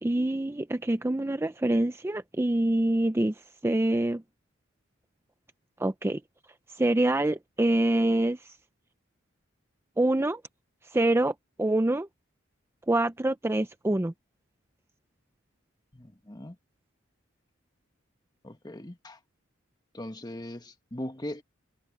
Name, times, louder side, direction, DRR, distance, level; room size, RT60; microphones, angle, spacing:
voice 1, 0.0-3.3 3.6-4.2 5.8-6.2 6.7-8.6 10.0-10.4 10.9-12.1 12.9-14.1, right 1 dB, 10° right, 0.4 m, -25 dB
voice 2, 15.9-16.6 18.4-19.2 19.9-21.4, left 1 dB, 20° left, 1.5 m, -39 dB
head